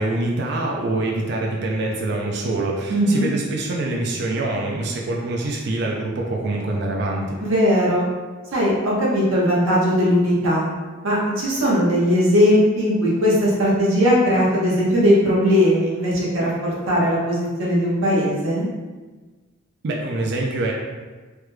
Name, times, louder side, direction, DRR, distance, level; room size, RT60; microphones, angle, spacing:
voice 1, 0.0-7.4 19.8-20.7, right 2 dB, 55° right, -1 dB, 0.3 m, -25 dB
voice 2, 2.9-3.3 7.4-8.0 8.5-10.7 11.0-18.7, equal, 75° right, -6 dB, 1.0 m, -19 dB
3.3 x 2.2 x 3.1 m, 1.3 s
head